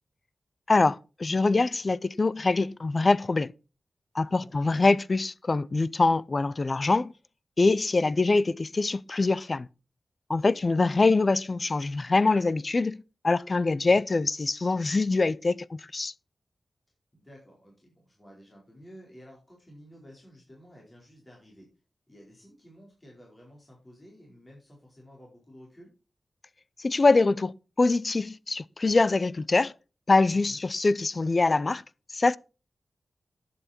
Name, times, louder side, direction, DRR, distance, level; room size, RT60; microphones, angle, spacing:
voice 1, 0.7-3.5 4.1-7.1 7.6-9.7 10.3-13.0 13.2-16.1 26.8-29.7 30.1-31.8 32.1-32.4, left 3 dB, 35° left, 0.5 m, -24 dB
voice 2, 4.2-4.6 10.4-10.7 13.7-14.0 17.1-21.7 22.1-25.9 30.3-30.6, equal, 20° left, 4.5 m, -52 dB
10.5 x 8.7 x 4.4 m
wide cardioid pair, 130°, 0 cm